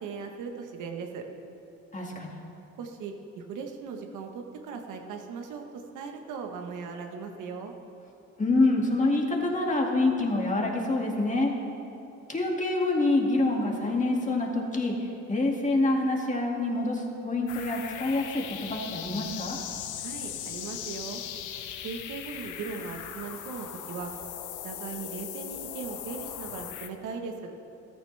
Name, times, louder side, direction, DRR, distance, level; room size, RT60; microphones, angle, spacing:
voice 1, 0.0-1.2 2.8-7.7 20.0-21.2 21.8-24.1 24.6-27.5, right 5 dB, 90° right, 3 dB, 1.2 m, -38 dB
voice 2, 1.9-2.3 8.4-11.5 12.3-19.6, left 2 dB, 25° left, 0 dB, 2.1 m, -26 dB
sound 1, 17.5-26.9, left 10 dB, 80° left, 0.8 m, -39 dB
14.0 x 13.5 x 3.4 m, 2.9 s
cardioid pair, 90°, 30 cm